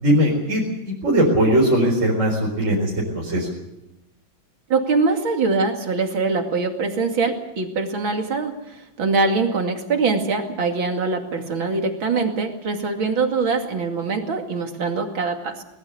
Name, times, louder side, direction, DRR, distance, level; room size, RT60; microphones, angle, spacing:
voice 1, 0.0-3.5, equal, 35° right, -2 dB, 4.6 m, -20 dB
voice 2, 4.7-15.6, right 4 dB, 80° right, 4 dB, 3.3 m, -23 dB
22.5 x 20.5 x 6.8 m, 0.91 s
omnidirectional pair, 2.1 m